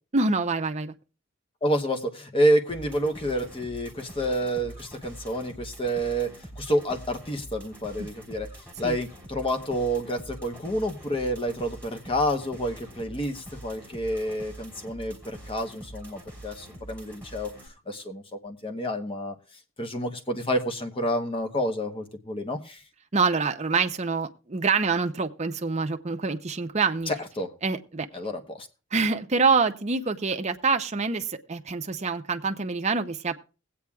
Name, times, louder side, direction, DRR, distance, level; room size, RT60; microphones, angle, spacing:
voice 1, 0.1-0.9 8.0-8.1 8.8-9.0 23.1-27.1 27.6-28.1 28.9-33.3, right 4 dB, 35° right, 6 dB, 0.7 m, -26 dB
voice 2, 1.6-19.4 19.8-22.8 27.1-27.5 28.1-28.7, equal, 25° left, 5 dB, 1.0 m, -29 dB
sound 1, 2.7-17.7, right 1 dB, 5° left, 3.2 m, -45 dB
21.0 x 8.6 x 2.3 m, 0.34 s
head